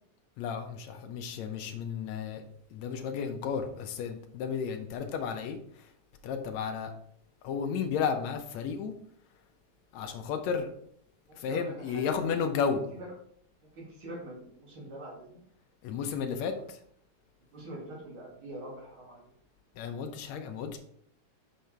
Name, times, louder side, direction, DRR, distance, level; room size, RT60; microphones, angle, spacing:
voice 1, 0.4-2.4 2.7-5.6 6.2-6.9 7.4-8.9 9.9-10.7 11.4-12.9 15.8-16.8 19.8-20.8, left 6 dB, 75° left, 6 dB, 1.7 m, -33 dB
voice 2, 11.3-12.2 13.0-13.1 13.6-15.4 16.5-16.7 17.5-19.3, right 1 dB, 40° right, -4 dB, 2.9 m, -44 dB
6.4 x 5.3 x 4.5 m, 0.66 s
omnidirectional pair, 3.8 m